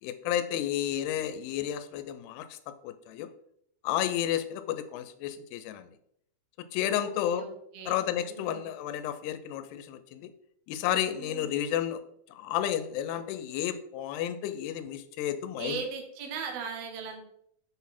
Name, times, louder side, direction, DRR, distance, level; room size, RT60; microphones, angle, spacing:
voice 1, 0.0-3.3 3.8-5.9 6.7-7.5 7.9-10.3 10.7-12.0 12.3-15.8, left 11 dB, 90° left, 10 dB, 2.6 m, -32 dB
voice 2, 6.9-8.6 11.2-11.5 15.6-17.2, right 5 dB, 75° right, 2 dB, 1.5 m, -39 dB
7.3 x 4.0 x 4.2 m, 0.71 s
omnidirectional pair, 4.6 m